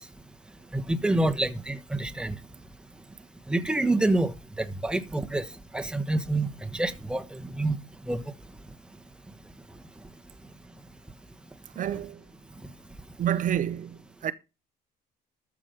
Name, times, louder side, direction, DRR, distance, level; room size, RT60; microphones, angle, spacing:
voice 1, 0.7-2.3 3.5-4.3 4.6-5.4 5.7-7.8 8.1-8.2, right 2 dB, 5° right, 1.2 m, -27 dB
voice 2, 11.7-12.3 13.2-14.3, right 10 dB, 50° right, 0.7 m, -29 dB
13.5 x 6.1 x 5.1 m
cardioid pair, 110°, 17 cm